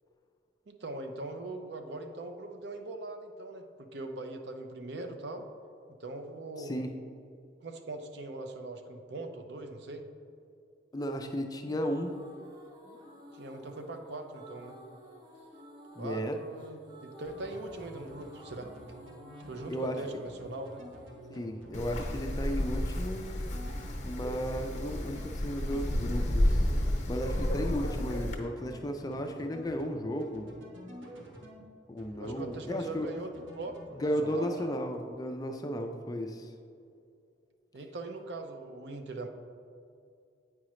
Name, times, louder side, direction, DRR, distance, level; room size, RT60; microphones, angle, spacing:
voice 1, 0.7-5.5 6.0-6.8 7.6-10.0 13.3-14.8 15.9-18.7 19.5-20.8 32.1-34.7 37.7-39.3, right 2 dB, 60° right, 6 dB, 0.5 m, -41 dB
voice 2, 6.6-6.9 10.9-12.1 16.0-16.4 19.7-20.0 21.3-23.2 24.0-26.7 27.1-30.5 31.9-33.1 34.0-36.5, equal, 20° left, 5 dB, 0.3 m, -34 dB
sound 1, 11.4-22.5, equal, 20° right, 0.7 m, -53 dB
sound 2, 17.2-31.6 32.0-32.6 32.9-33.8 34.1-34.7, equal, 80° right, 1.1 m, -50 dB
Wind, 21.7-28.3, left 1 dB, 35° left, 0.9 m, -31 dB
8.6 x 4.8 x 3.1 m, 2.5 s
head